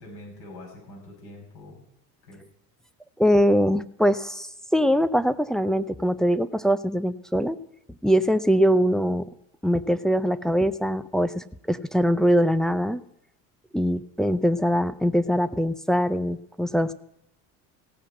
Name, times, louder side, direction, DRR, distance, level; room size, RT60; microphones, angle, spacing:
voice 1, 0.0-1.9 2.3-2.4, left 1 dB, 50° left, -2 dB, 7.0 m, -44 dB
voice 2, 3.2-7.6 8.0-9.3 9.6-13.0 13.7-16.9, equal, ahead, 12 dB, 0.5 m, -22 dB
16.0 x 5.9 x 8.1 m, 0.76 s
hypercardioid pair, 70°, 48 cm